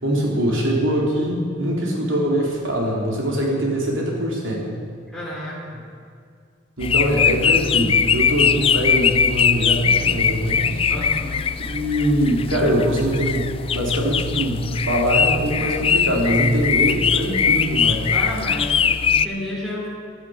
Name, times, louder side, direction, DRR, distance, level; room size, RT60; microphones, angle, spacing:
voice 1, 0.0-4.7 6.8-10.8 11.7-18.1, equal, 85° right, -1 dB, 3.7 m, -22 dB
voice 2, 5.1-5.8 10.9-11.5 18.1-19.9, left 1 dB, ahead, -7 dB, 3.0 m, -31 dB
sound 1, 6.8-19.3, left 7 dB, 30° left, 0.3 m, -21 dB
16.0 x 11.0 x 6.5 m, 2.3 s
head